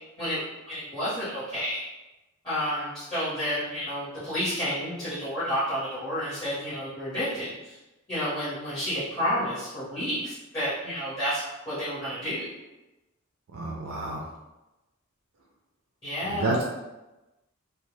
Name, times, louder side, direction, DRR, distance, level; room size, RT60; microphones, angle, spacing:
voice 1, 0.2-1.8 2.4-7.7 8.1-12.5 16.0-16.6, equal, 20° left, -13 dB, 1.0 m, -30 dB
voice 2, 13.5-14.2 16.3-16.6, right 2 dB, 80° right, -2 dB, 0.4 m, -29 dB
2.3 x 2.2 x 3.1 m, 1.0 s
head